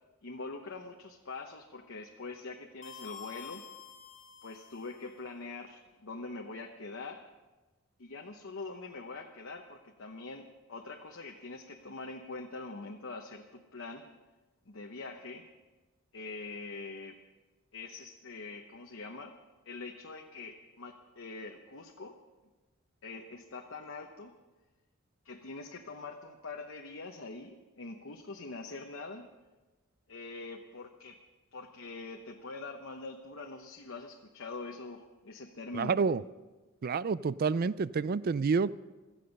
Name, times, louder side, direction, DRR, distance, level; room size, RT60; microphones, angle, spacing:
voice 1, 0.2-3.6 4.4-7.2 8.0-14.0 14.7-15.4 16.1-17.2 17.7-19.3 19.6-22.2 23.0-24.3 25.2-29.3 30.1-31.2 31.5-36.0, left 3 dB, 60° left, 2 dB, 0.9 m, -44 dB
sound 1, 2.8-5.2, left 8 dB, 35° left, 1.0 m, -49 dB
voice 2, 35.7-36.2 36.8-38.7, right 5 dB, 45° right, 19 dB, 0.4 m, -28 dB
16.5 x 13.5 x 5.3 m, 1.2 s
head